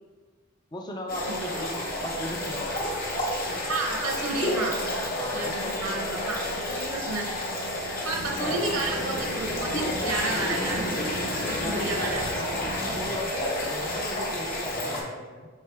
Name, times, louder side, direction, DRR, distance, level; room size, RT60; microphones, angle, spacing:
voice 1, 0.7-2.9 5.1-6.2 11.6-12.1 12.5-15.5, left 1 dB, 20° left, 2 dB, 0.4 m, -37 dB
sound 1, 1.1-15.0, left 1 dB, 45° left, 0.8 m, -30 dB
voice 2, 1.3-1.6 3.7-4.8 5.3-6.4 6.7-7.3 8.0-12.6, right 3 dB, 85° right, 1 dB, 0.7 m, -32 dB
sound 2, 8.1-13.2, right 1 dB, 40° right, 0.5 m, -39 dB
4.5 x 3.3 x 3.2 m, 1.4 s
head